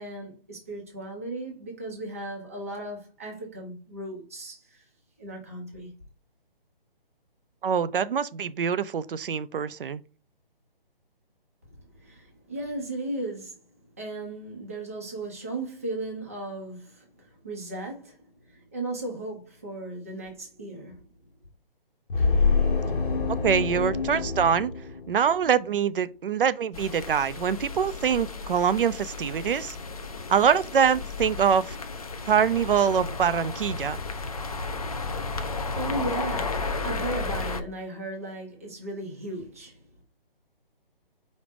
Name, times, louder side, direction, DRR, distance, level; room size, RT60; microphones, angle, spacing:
voice 1, 0.0-4.8 5.2-5.9 11.9-13.6 14.0-21.0 35.2-39.8, right 2 dB, 15° right, 0.5 m, -36 dB
voice 2, 7.6-10.0 23.4-24.7 25.1-29.8 30.3-31.8 32.3-34.0, right 7 dB, 65° right, 0.5 m, -24 dB
sound 1, 22.1-25.6, left 4 dB, 60° left, 1.2 m, -26 dB
sound 2, 26.7-37.6, left 3 dB, 40° left, 0.4 m, -33 dB
5.1 x 2.1 x 4.8 m
hypercardioid pair, 170°, 29 cm